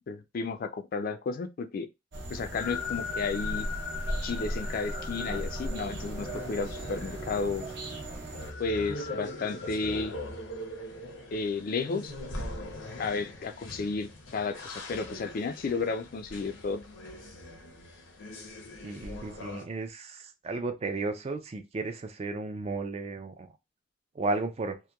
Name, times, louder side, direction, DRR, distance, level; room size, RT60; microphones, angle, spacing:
voice 1, 0.1-1.9 2.3-3.7 4.2-7.7 8.6-10.2 11.3-12.1 13.0-16.8, left 4 dB, 50° left, 0.3 m, -32 dB
sound 1, 2.1-8.5, right 1 dB, 60° right, 0.8 m, -37 dB
sound 2, 2.6-19.6, left 3 dB, 85° left, 0.7 m, -41 dB
voice 2, 18.8-23.5 24.2-24.8, right 3 dB, 35° right, 0.4 m, -34 dB
2.9 x 2.1 x 2.2 m
head